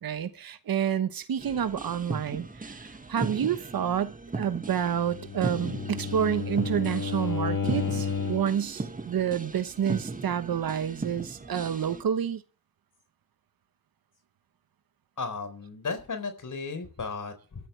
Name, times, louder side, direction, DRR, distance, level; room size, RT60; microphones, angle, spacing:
voice 1, 0.0-12.4, right 8 dB, 85° right, 1.2 m, -29 dB
sound 1, 1.4-12.0, right 3 dB, 25° right, 1.8 m, -37 dB
Bowed string instrument, 5.0-8.6, left 5 dB, 80° left, 6.0 m, -32 dB
voice 2, 15.2-17.7, left 4 dB, 60° left, 4.2 m, -35 dB
25.0 x 13.0 x 3.3 m
wide cardioid pair, 95°, 34 cm